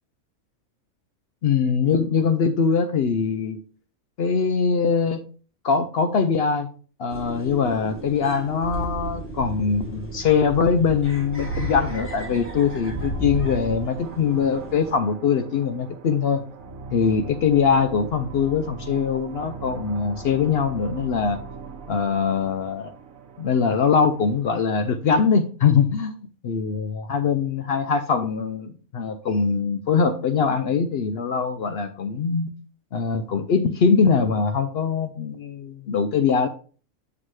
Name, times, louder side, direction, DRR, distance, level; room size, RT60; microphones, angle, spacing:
voice 1, 1.4-3.6 4.2-5.2 5.6-6.7 7.0-16.5 16.9-21.4 21.9-22.9 23.4-26.2 26.4-32.5 32.9-36.5, left 6 dB, 65° left, 8 dB, 0.7 m, -22 dB
sound 1, 7.1-15.0, right 2 dB, 10° left, 1.6 m, -33 dB
sound 2, 11.2-24.5, right 4 dB, 75° right, 1.3 m, -40 dB
7.7 x 5.9 x 3.1 m, 0.40 s
omnidirectional pair, 1.4 m